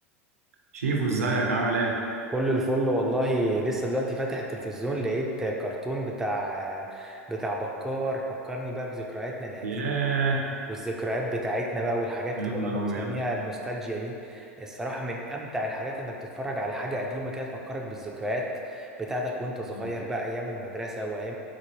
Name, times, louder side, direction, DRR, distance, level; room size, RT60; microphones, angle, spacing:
voice 1, 0.7-1.9 9.6-10.5 12.4-13.2 19.7-19.9, right 3 dB, 80° right, 0 dB, 0.4 m, -27 dB
voice 2, 2.3-9.9 10.7-21.3, right 1 dB, 5° right, -1 dB, 0.3 m, -30 dB
4.0 x 2.1 x 3.0 m, 2.7 s
hypercardioid pair, 90°, 8 cm